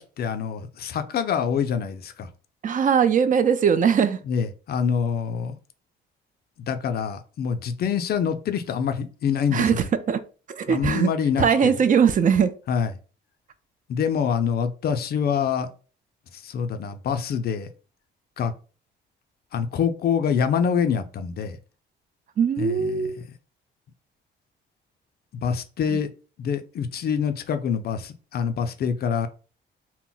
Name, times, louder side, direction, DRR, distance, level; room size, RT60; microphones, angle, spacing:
voice 1, 0.0-2.3 4.3-5.6 6.7-9.8 10.7-11.7 12.7-12.9 13.9-15.7 16.4-17.7 18.4-18.5 19.5-21.6 22.6-23.1 25.4-26.1 26.4-29.3, left 7 dB, 55° left, 9 dB, 0.4 m, -25 dB
voice 2, 2.6-4.2 9.5-10.2 10.5-11.1 11.4-12.5 22.4-23.2 25.9-26.0, right 7 dB, 40° right, 11 dB, 0.4 m, -20 dB
2.1 x 2.0 x 3.8 m, 0.36 s
cardioid pair, 90°, 20 cm